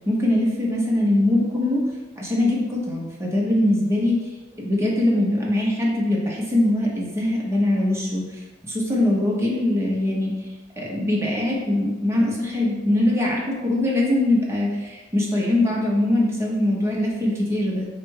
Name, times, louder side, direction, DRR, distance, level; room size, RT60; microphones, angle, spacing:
voice 1, 0.1-1.8 2.2-4.2 4.6-10.3 10.8-17.9, left 1 dB, 15° right, -4 dB, 0.9 m, -22 dB
4.4 x 2.5 x 4.7 m, 1.2 s
head